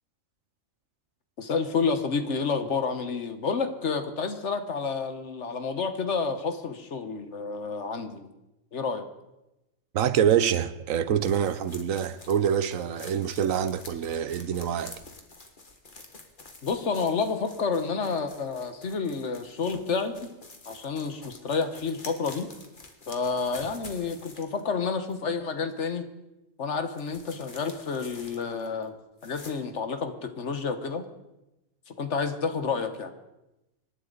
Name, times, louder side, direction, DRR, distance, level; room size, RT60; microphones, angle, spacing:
voice 1, 1.4-8.3 8.7-9.1 16.6-20.3 20.7-22.5 23.1-26.0 26.6-28.9 29.2-31.0 31.9-33.1, left 5 dB, 60° left, 1.5 m, -29 dB
voice 2, 9.9-15.0, right 9 dB, 85° right, 1.2 m, -26 dB
sound 1, 11.2-24.7 25.1-25.2 26.9-28.8 29.2-29.5, left 3 dB, 40° left, 1.8 m, -48 dB
26.0 x 11.5 x 4.0 m
omnidirectional pair, 1.3 m